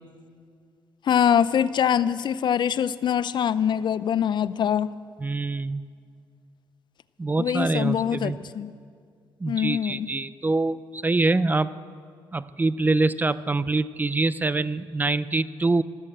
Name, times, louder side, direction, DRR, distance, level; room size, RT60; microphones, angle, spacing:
voice 1, 1.1-4.9 7.4-8.7 9.5-10.1, left 8 dB, 55° left, 16 dB, 0.5 m, -23 dB
voice 2, 5.2-5.8 7.2-8.4 9.4-11.7 12.3-15.8, right 3 dB, 20° right, 16 dB, 0.5 m, -25 dB
13.5 x 13.0 x 7.9 m, 2.2 s
cardioid pair, 80°, 9 cm